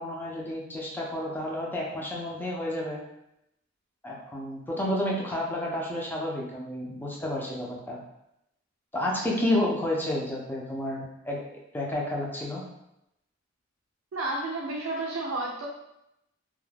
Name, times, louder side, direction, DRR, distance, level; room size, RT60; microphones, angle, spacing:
voice 1, 0.0-3.0 4.0-8.0 8.9-11.4 11.7-12.6, left 1 dB, 10° left, -3 dB, 0.5 m, -30 dB
voice 2, 14.1-15.7, right 2 dB, 90° right, -3 dB, 0.4 m, -31 dB
2.3 x 2.2 x 3.2 m, 0.84 s
head